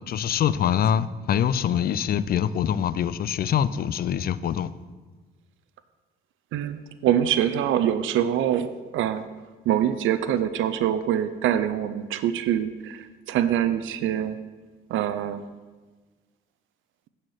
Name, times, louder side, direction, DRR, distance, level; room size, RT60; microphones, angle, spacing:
voice 1, 0.1-4.7, left 9 dB, 50° left, 0.4 m, -24 dB
voice 2, 6.5-9.3 9.7-14.4 14.9-15.4, right 10 dB, 80° right, 0.5 m, -24 dB
9.4 x 4.4 x 6.4 m
cardioid pair, 90°, 20 cm